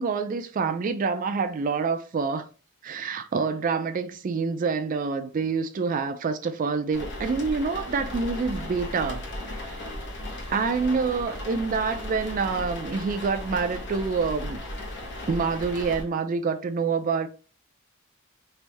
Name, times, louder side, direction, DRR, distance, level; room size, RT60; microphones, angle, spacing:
voice 1, 0.0-2.5 2.8-9.8 10.5-14.6 15.3-17.3, right 5 dB, 40° right, 0.3 m, -27 dB
sound 1, 6.9-16.0, left 1 dB, 55° left, 0.9 m, -36 dB
3.3 x 2.6 x 3.3 m
head